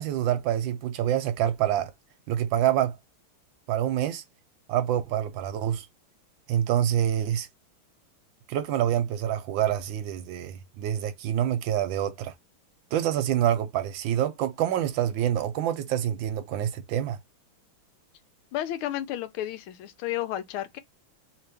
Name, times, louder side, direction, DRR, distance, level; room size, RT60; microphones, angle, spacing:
voice 1, 0.0-1.9 2.3-3.0 3.7-4.2 4.7-5.9 6.5-7.5 8.5-12.3 12.9-17.2, right 11 dB, 75° right, 1.2 m, -26 dB
voice 2, 18.5-20.8, left 13 dB, 85° left, 1.5 m, -32 dB
3.2 x 2.9 x 3.3 m
omnidirectional pair, 2.3 m